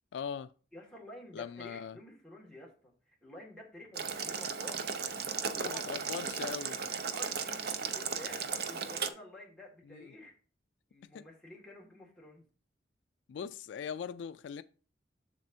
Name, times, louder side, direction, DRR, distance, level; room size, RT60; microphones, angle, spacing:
voice 1, 0.1-0.5 1.3-2.0 5.5-6.8 9.9-10.1 11.1-11.2 13.3-14.6, left 7 dB, 75° left, 0.3 m, -40 dB
voice 2, 0.7-4.9 5.4-6.0 6.9-10.3 10.9-12.4, left 1 dB, 5° left, 1.9 m, -51 dB
Boiling, 3.9-9.1, right 6 dB, 55° right, 0.6 m, -36 dB
7.4 x 6.7 x 2.7 m
head